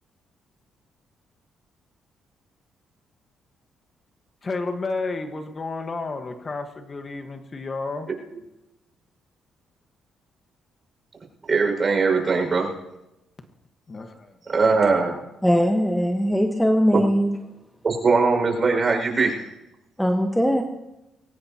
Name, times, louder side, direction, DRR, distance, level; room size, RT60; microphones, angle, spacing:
voice 1, 4.4-8.1 13.9-14.4, left 3 dB, 35° left, 1.5 m, -31 dB
voice 2, 11.5-12.7 14.4-15.2 16.9-17.0 17.8-19.4, right 4 dB, 40° right, 5.8 m, -20 dB
voice 3, 15.4-17.4 20.0-20.6, equal, ahead, 1.3 m, -20 dB
23.0 x 18.5 x 3.0 m
cardioid pair, 90°, 0 cm